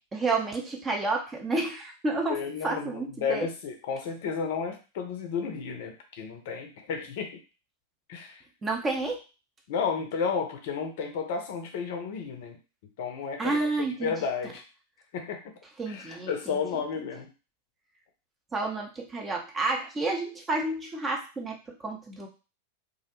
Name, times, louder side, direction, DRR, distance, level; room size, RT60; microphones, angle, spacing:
voice 1, 0.1-3.5 8.6-9.2 13.4-14.1 15.8-16.6 18.5-22.3, right 3 dB, 20° right, 1 dB, 0.6 m, -30 dB
voice 2, 2.3-7.3 8.1-8.4 9.7-12.6 13.0-13.7 14.0-14.6 15.1-15.4 15.9-17.3, left 6 dB, 50° left, 5 dB, 0.5 m, -32 dB
2.4 x 2.0 x 2.8 m, 0.32 s
figure-of-eight pair, 90°, 0 cm